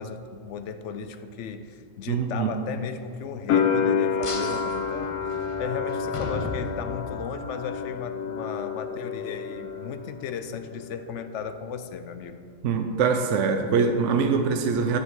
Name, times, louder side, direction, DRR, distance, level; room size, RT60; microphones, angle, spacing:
voice 1, 0.0-5.2 5.6-12.4, left 7 dB, 70° left, 10 dB, 0.8 m, -35 dB
voice 2, 2.1-2.5 12.6-15.0, right 5 dB, 70° right, 5 dB, 0.9 m, -23 dB
sound 1, 3.5-10.3 10.5-11.4, left 6 dB, 85° left, 1.1 m, -29 dB
sound 2, 4.2-7.4, left 2 dB, 35° left, 0.6 m, -36 dB
10.5 x 6.4 x 4.6 m, 2.3 s
omnidirectional pair, 1.4 m